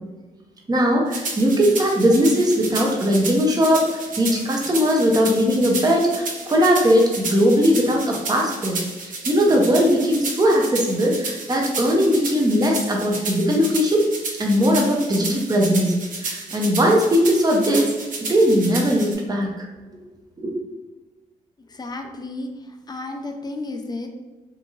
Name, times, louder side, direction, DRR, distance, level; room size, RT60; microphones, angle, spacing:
voice 1, 0.7-14.0 14.4-15.9 16.2-17.9 18.3-19.7 20.4-20.5, equal, 25° right, 0 dB, 0.7 m, -19 dB
sound 1, 1.1-19.2, right 3 dB, 55° right, 0.7 m, -32 dB
voice 2, 21.7-24.1, left 2 dB, 25° left, 4 dB, 0.5 m, -32 dB
2.8 x 2.6 x 2.5 m, 1.2 s
supercardioid pair, 50°, 16 cm